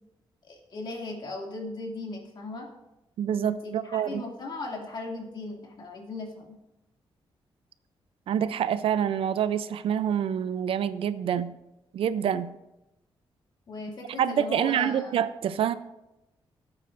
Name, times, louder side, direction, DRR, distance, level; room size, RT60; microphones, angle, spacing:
voice 1, 0.4-2.7 3.4-6.6 13.7-15.1, left 2 dB, 55° left, -1 dB, 2.4 m, -37 dB
voice 2, 3.2-4.2 8.3-11.5 11.9-12.5 14.2-15.7, right 9 dB, 80° right, 14 dB, 0.5 m, -27 dB
16.5 x 8.7 x 2.6 m, 0.92 s
wide cardioid pair, 140°, 9 cm